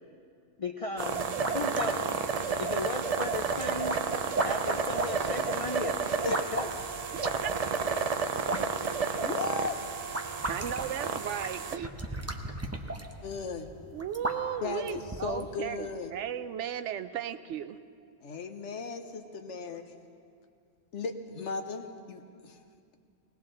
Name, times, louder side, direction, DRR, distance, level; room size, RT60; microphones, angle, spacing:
voice 1, 0.6-1.2 1.5-2.2 2.6-4.0 4.4-6.7, left 2 dB, 45° left, 3 dB, 0.4 m, -36 dB
sound 1, 1.0-15.6, right 1 dB, 15° right, 0.7 m, -38 dB
sound 2, 1.0-11.8, right 5 dB, 50° right, 0.4 m, -32 dB
voice 2, 9.1-9.8 13.2-13.7 14.6-16.1 18.2-19.9 20.9-22.6, left 4 dB, 70° left, 6 dB, 1.2 m, -36 dB
voice 3, 10.5-11.9 13.9-17.8, right 9 dB, 75° right, 12 dB, 0.9 m, -35 dB
20.0 x 19.0 x 3.8 m, 2.3 s
omnidirectional pair, 1.3 m